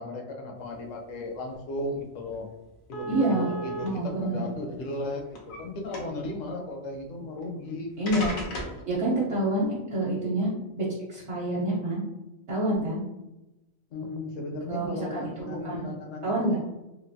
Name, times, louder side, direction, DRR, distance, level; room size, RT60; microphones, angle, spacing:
voice 1, 0.0-2.5 2.9-7.9 13.9-16.6, left 2 dB, 70° left, 2 dB, 1.0 m, -36 dB
sound 1, 1.8-1.9 2.2-2.4 2.9-3.9 4.7-5.6 5.9-6.3 7.4-7.5 8.1-8.8, right 1 dB, 90° left, 1.2 m, -35 dB
voice 2, 3.1-3.5 3.8-4.4 8.0-8.4 8.9-10.5 10.8-12.0 12.5-13.0 14.7-15.9 16.2-16.6, right 1 dB, 60° right, -6 dB, 1.0 m, -27 dB
3.2 x 2.5 x 2.6 m, 0.97 s
omnidirectional pair, 1.4 m